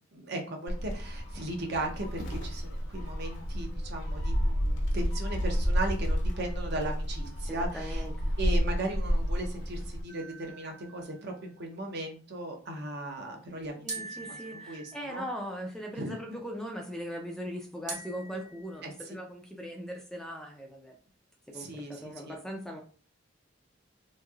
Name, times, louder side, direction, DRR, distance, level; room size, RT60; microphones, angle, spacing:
voice 1, 0.0-8.1 8.4-15.3 16.0-16.2 18.8-18.9 21.5-22.4, right 1 dB, 55° right, 2 dB, 0.7 m, -37 dB
Gull seagull, 0.7-10.0, equal, 65° left, 0.8 m, -31 dB
voice 2, 7.5-8.4 13.8-21.0 21.5-22.8, equal, 5° left, 1 dB, 0.4 m, -40 dB
sound 1, 10.1-11.5 13.9-15.5 17.9-19.0, right 3 dB, 40° right, 1.1 m, -44 dB
3.0 x 2.6 x 2.3 m, 0.39 s
head